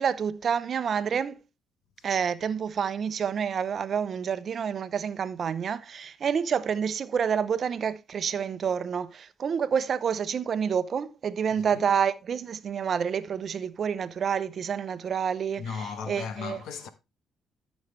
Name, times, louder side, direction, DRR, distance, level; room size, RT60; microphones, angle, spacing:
voice 1, 0.0-1.4 2.0-16.6, right 7 dB, 50° right, 0.8 m, -28 dB
voice 2, 11.5-11.9 15.6-16.9, left 6 dB, 85° left, 1.3 m, -36 dB
13.0 x 6.3 x 3.3 m
cardioid pair, 90°, 0 cm